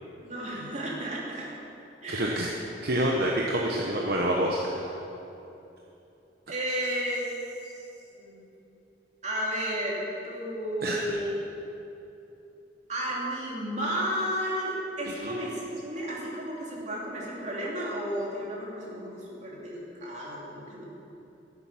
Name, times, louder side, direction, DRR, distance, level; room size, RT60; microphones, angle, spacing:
voice 1, 0.2-1.5 2.0-2.4 6.5-7.3 7.6-7.9 8.2-8.4 9.2-11.5 12.9-20.9, equal, 40° right, -4 dB, 2.7 m, -33 dB
voice 2, 2.1-2.5 2.8-4.9 10.8-11.0 15.2-15.3, right 1 dB, 60° right, -2 dB, 1.0 m, -27 dB
13.5 x 8.0 x 5.8 m, 2.9 s
head